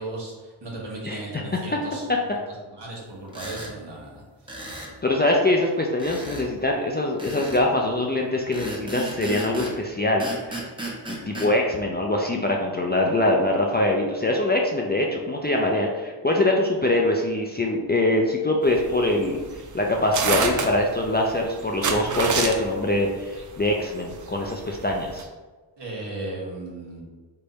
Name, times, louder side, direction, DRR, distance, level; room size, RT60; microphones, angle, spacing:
voice 1, 0.0-2.0 2.6-4.7 25.8-27.0, right 2 dB, 60° right, -3 dB, 1.2 m, -36 dB
sound 1, 3.3-3.7 4.5-4.9 6.0-6.5 7.2-7.7 8.5-9.8 10.2-11.5, right 1 dB, 10° right, 0.9 m, -34 dB
voice 2, 5.0-10.6 11.1-19.4 19.7-25.3, left 1 dB, 25° left, -1 dB, 0.4 m, -23 dB
sound 2, 18.6-25.2, right 4 dB, 40° right, 0.5 m, -27 dB
3.3 x 2.2 x 4.0 m, 1.3 s
cardioid pair, 60°, 47 cm